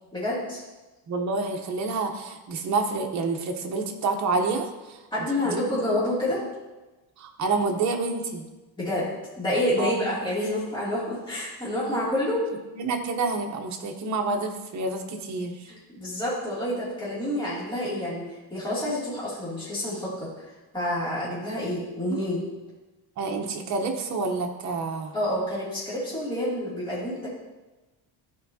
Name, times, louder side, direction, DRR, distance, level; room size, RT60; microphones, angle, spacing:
voice 1, 0.1-0.6 5.1-6.4 8.8-9.1 9.4-12.4 15.7-20.3 20.7-22.4 25.1-27.3, left 1 dB, 15° left, -10 dB, 2.8 m, -28 dB
voice 2, 1.1-5.0 5.4-6.0 7.2-8.4 9.8-10.1 12.7-15.7 22.0-22.2 23.2-25.1, right 3 dB, 45° right, 3 dB, 1.0 m, -28 dB
13.5 x 4.7 x 2.8 m, 1.1 s
cardioid pair, 150°, 39 cm